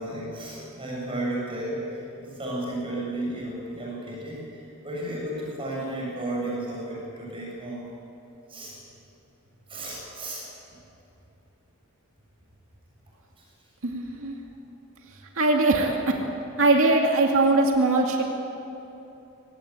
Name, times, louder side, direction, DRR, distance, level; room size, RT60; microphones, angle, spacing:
voice 1, 0.0-7.8 8.5-8.8 9.7-10.5, right 1 dB, 25° right, -4 dB, 7.4 m, -33 dB
voice 2, 13.8-14.3 15.4-16.2 16.6-18.2, right 2 dB, 65° right, 1 dB, 2.4 m, -21 dB
24.0 x 18.0 x 8.5 m, 2.9 s
head